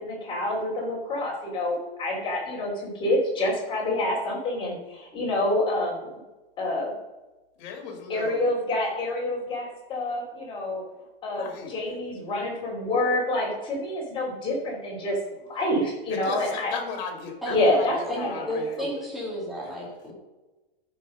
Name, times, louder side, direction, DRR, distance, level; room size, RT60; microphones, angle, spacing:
voice 1, 0.0-6.1 6.6-6.9 8.1-10.8 11.2-15.2 15.5-16.7 17.5-18.5, left 1 dB, 15° left, -4 dB, 3.3 m, -27 dB
voice 2, 7.6-8.4 11.4-12.0 16.1-19.0 19.6-19.7, left 5 dB, 50° left, 4 dB, 2.4 m, -37 dB
voice 3, 18.1-20.1, equal, ahead, -6 dB, 2.5 m, -32 dB
13.5 x 5.7 x 5.4 m, 1.1 s
supercardioid pair, 160°, 30 cm